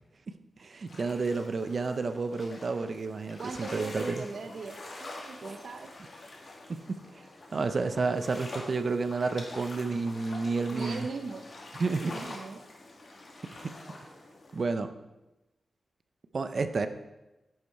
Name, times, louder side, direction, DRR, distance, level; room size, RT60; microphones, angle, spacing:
voice 1, 0.6-4.2 6.7-7.0 7.5-11.1 11.8-12.1 13.5-13.7 14.5-14.9 16.3-16.9, right 4 dB, 45° right, 9 dB, 0.6 m, -30 dB
sound 1, 0.9-14.7, left 2 dB, 50° left, 2.1 m, -46 dB
voice 2, 3.4-5.9 10.7-11.4 12.0-12.6, right 4 dB, 70° right, 5 dB, 0.9 m, -39 dB
10.5 x 8.4 x 4.6 m, 1.0 s
wide cardioid pair, 165°, 0 cm